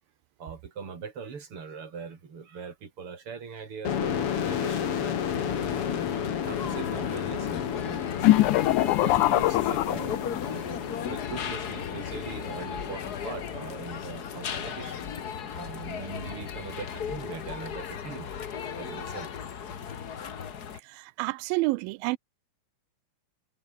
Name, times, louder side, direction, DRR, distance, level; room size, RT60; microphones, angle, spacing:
voice 1, 0.4-5.9 6.5-8.1 8.7-15.0 15.5-18.3 18.7-19.3, right 5 dB, 40° right, 4.1 m, -41 dB
sound 1, 3.8-17.3, left 8 dB, 50° left, 2.3 m, -33 dB
sound 2, 5.3-20.8, left 7 dB, 90° left, 0.8 m, -37 dB
sound 3, 8.2-10.6, left 16 dB, 75° left, 2.1 m, -23 dB
voice 2, 21.2-22.2, right 23 dB, 90° right, 2.3 m, -28 dB
omnidirectional pair, 4.1 m